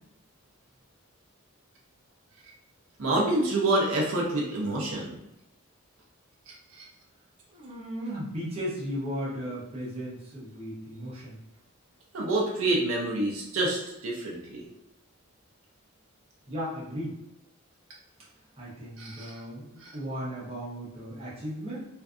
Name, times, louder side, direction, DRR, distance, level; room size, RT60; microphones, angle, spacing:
voice 1, 3.0-5.2 6.5-6.8 12.1-14.7 19.0-19.4 19.8-19.9, right 2 dB, 70° right, -3 dB, 0.5 m, -28 dB
voice 2, 7.5-11.4 16.5-17.2 18.6-21.9, equal, 25° right, -7 dB, 0.7 m, -36 dB
2.6 x 2.4 x 2.3 m, 0.86 s
head